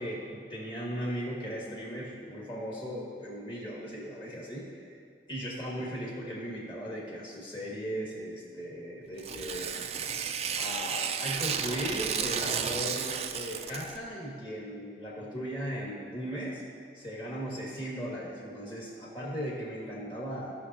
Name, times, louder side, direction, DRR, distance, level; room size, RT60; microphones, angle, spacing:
voice 1, 0.0-5.0 5.3-9.7 10.5-16.6 16.9-20.6, equal, 25° left, -5 dB, 2.0 m, -37 dB
Tearing, 9.2-14.0, right 7 dB, 35° right, 0.4 m, -33 dB
17.0 x 6.2 x 2.8 m, 2.2 s
head